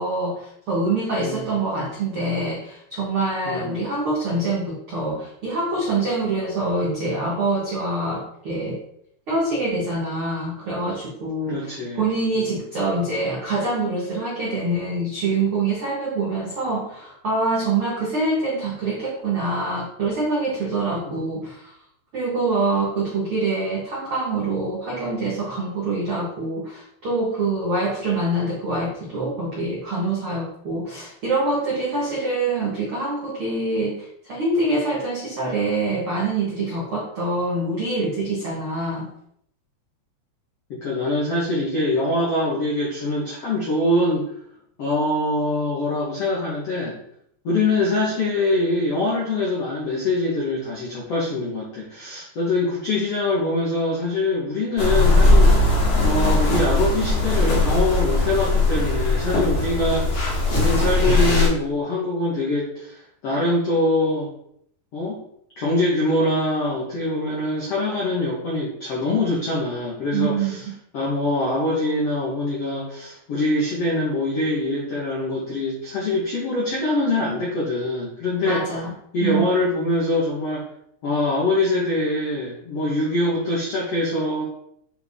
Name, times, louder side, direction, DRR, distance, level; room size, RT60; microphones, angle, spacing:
voice 1, 0.0-8.8 9.3-21.7 22.1-39.1 70.1-70.7 78.4-78.9 79.2-79.5, right 2 dB, 85° right, -5 dB, 1.1 m, -25 dB
voice 2, 3.4-3.8 11.5-12.1 12.4-12.6 21.0-21.2 40.7-44.3 44.8-47.0 47.4-55.6 56.0-64.3 64.9-65.2 65.6-70.6 70.9-78.6 79.1-80.6 81.0-84.4, left 2 dB, 75° left, -5 dB, 1.4 m, -24 dB
sound 1, 54.8-61.5, left 2 dB, 45° left, 2.1 m, -19 dB
9.2 x 4.2 x 3.6 m, 0.69 s
omnidirectional pair, 5.2 m